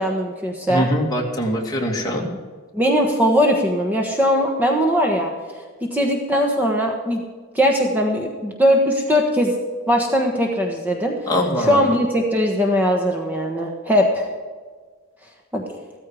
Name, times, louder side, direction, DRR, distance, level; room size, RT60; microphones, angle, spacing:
voice 1, 0.0-0.9 2.7-5.3 5.8-7.2 7.5-9.5 9.9-11.1 11.6-14.3 15.5-15.8, equal, 10° right, 1 dB, 1.3 m, -20 dB
voice 2, 0.7-2.3 11.3-11.8, equal, 20° left, -1 dB, 2.5 m, -22 dB
15.0 x 14.0 x 5.0 m, 1.5 s
head